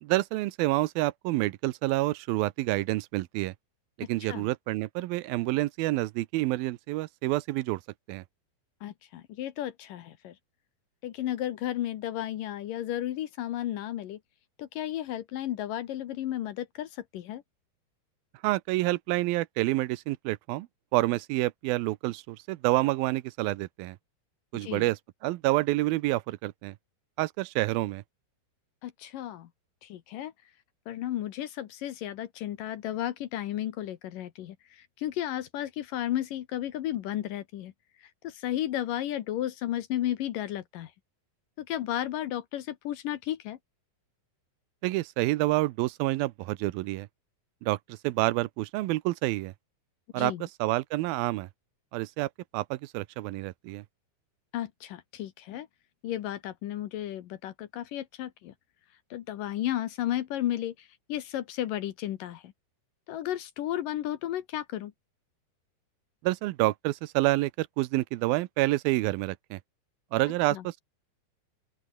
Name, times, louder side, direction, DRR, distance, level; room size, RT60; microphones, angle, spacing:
voice 1, 0.0-3.5 4.1-7.8 8.1-8.2 18.4-20.7 20.9-24.0 24.5-25.0 25.2-26.7 27.2-28.0 44.8-47.1 47.6-47.8 48.0-49.5 50.1-50.3 50.6-51.5 51.9-53.8 66.2-69.6 70.1-70.8, right 18 dB, 80° right, 2.5 m, -28 dB
voice 2, 8.8-10.4 11.0-14.2 14.6-17.4 24.5-24.9 28.8-29.5 29.8-30.3 30.9-37.7 38.2-40.9 41.6-43.6 50.1-50.5 54.5-55.7 56.0-58.5 59.1-62.5 63.1-64.9 70.5-70.6, left 12 dB, 70° left, 2.6 m, -33 dB
open air
omnidirectional pair, 4.4 m